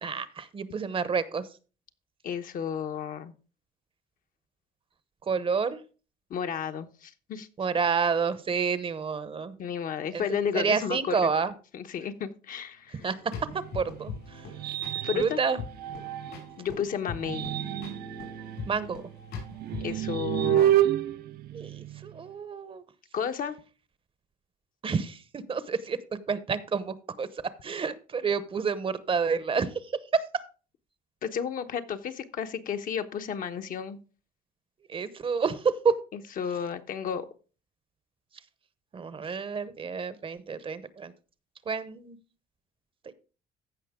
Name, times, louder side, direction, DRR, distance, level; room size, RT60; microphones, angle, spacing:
voice 1, 0.0-1.5 5.2-5.8 7.6-9.5 10.1-10.2 10.5-11.5 13.0-13.2 13.7-14.5 15.1-15.6 18.7-19.0 21.5-22.8 24.8-30.2 34.9-36.0 38.9-41.1 41.7-42.2 43.0-43.1, right 5 dB, 30° right, 15 dB, 0.8 m, -29 dB
voice 2, 2.2-3.3 6.3-7.5 9.6-11.3 11.7-13.0 15.0-15.4 16.6-17.5 19.8-20.8 23.1-23.6 31.2-34.0 36.4-37.3, left 7 dB, 55° left, 7 dB, 1.0 m, -32 dB
sound 1, 13.0-20.0, left 5 dB, 80° left, 5.5 m, -42 dB
sound 2, 13.4-16.6 17.1-22.3, right 12 dB, 65° right, 0.7 m, -30 dB
15.0 x 5.5 x 3.6 m, 0.35 s
cardioid pair, 110°, 17 cm